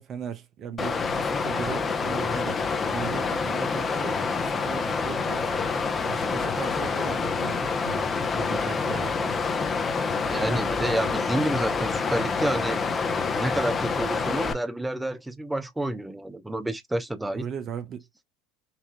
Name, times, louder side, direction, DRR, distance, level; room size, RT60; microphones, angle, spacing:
voice 1, 0.0-5.6 6.0-8.1 8.3-9.6 17.3-18.1, right 7 dB, 45° right, 1.0 m, -38 dB
Water, 0.8-14.5, left 4 dB, 25° left, 1.1 m, -27 dB
voice 2, 10.3-12.8 13.4-17.5, right 1 dB, 10° right, 0.9 m, -29 dB
5.9 x 2.9 x 2.5 m
hypercardioid pair, 80°, 0 cm